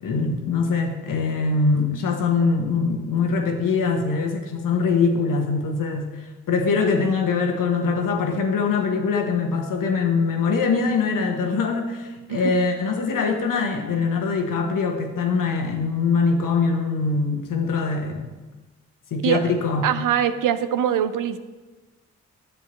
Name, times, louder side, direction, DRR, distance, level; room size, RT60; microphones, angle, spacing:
voice 1, 0.0-6.2 6.5-18.3 19.1-19.9, left 4 dB, 70° left, 3 dB, 1.2 m, -23 dB
voice 2, 19.8-21.4, right 9 dB, 70° right, 12 dB, 0.6 m, -22 dB
9.9 x 7.0 x 3.2 m, 1.2 s
supercardioid pair, 45°, 34 cm